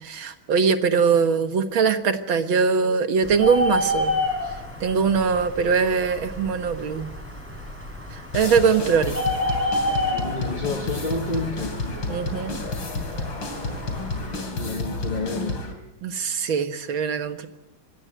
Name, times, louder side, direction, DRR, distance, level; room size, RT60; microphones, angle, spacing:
voice 1, 0.0-4.1 4.8-7.1 8.1-9.2 12.1-12.6 16.0-17.5, right 5 dB, 80° right, 8 dB, 2.3 m, -22 dB
Bird, 3.2-14.4, left 1 dB, 5° right, 6.6 m, -30 dB
sound 1, 8.3-15.7, left 3 dB, 80° left, 4.0 m, -31 dB
voice 2, 10.1-11.8 14.6-15.6, left 2 dB, 25° left, 2 dB, 2.1 m, -29 dB
25.0 x 18.0 x 9.4 m, 0.96 s
omnidirectional pair, 2.1 m